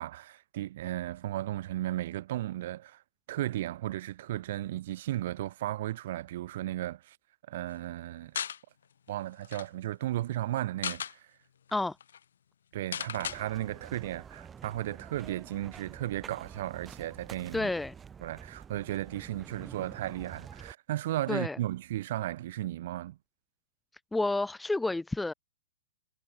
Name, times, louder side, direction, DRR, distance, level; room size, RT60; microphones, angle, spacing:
voice 1, 0.0-3.0 3.3-7.2 7.5-8.4 9.1-11.3 12.7-17.7 18.2-23.2, right 14 dB, 55° right, 1.7 m, -35 dB
sound 1, 8.3-8.6 9.1-9.2 9.4-9.7 10.6-11.1 11.7-11.8 12.0-12.2 12.9-13.4, left 8 dB, 80° left, 2.2 m, -35 dB
sound 2, 13.1-20.7, right 7 dB, 15° right, 3.7 m, -48 dB
voice 2, 17.5-17.9 21.3-21.6 24.1-25.3, left 2 dB, 5° left, 0.8 m, -30 dB
hypercardioid pair, 150°, 0 cm